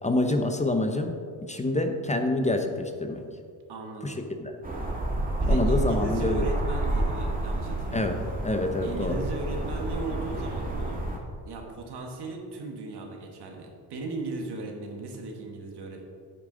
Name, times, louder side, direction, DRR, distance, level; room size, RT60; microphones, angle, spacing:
voice 1, 0.0-1.1 1.5-3.2 4.0-4.5 5.5-6.5 7.9-8.2 8.4-9.2, left 2 dB, 15° left, 6 dB, 0.7 m, -27 dB
voice 2, 3.7-4.2 5.4-8.2 8.8-11.0 11.5-16.0, right 3 dB, 65° right, 2 dB, 1.5 m, -37 dB
sound 1, 4.6-11.2, right 1 dB, 20° right, 1.7 m, -29 dB
8.7 x 8.6 x 3.8 m, 2.2 s
cardioid pair, 100°, 43 cm